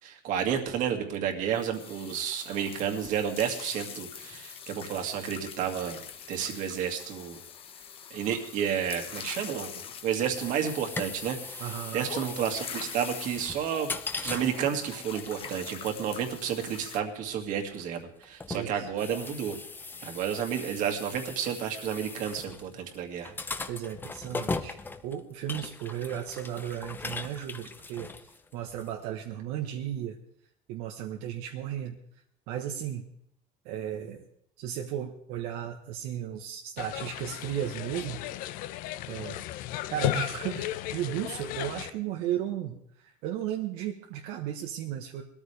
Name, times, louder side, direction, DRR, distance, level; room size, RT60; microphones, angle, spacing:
voice 1, 0.0-6.0 6.3-7.4 8.1-9.7 10.0-11.6 11.9-13.9 14.2-19.6 20.0-23.3, right 8 dB, 55° right, 4 dB, 2.3 m, -31 dB
sound 1, 1.5-17.0, left 8 dB, 35° left, 1.4 m, -44 dB
sound 2, 10.3-28.9, left 3 dB, 10° left, 0.8 m, -40 dB
voice 2, 11.6-12.1 18.5-18.9 23.7-24.8 25.0-30.2 30.7-32.0 32.5-33.1 33.6-34.3 34.6-38.2 39.1-39.4 39.9-45.2, right 10 dB, 75° right, 2 dB, 1.4 m, -35 dB
sound 3, 36.8-41.9, left 14 dB, 65° left, 0.8 m, -34 dB
21.0 x 13.5 x 3.5 m, 0.70 s
cardioid pair, 155°, 16 cm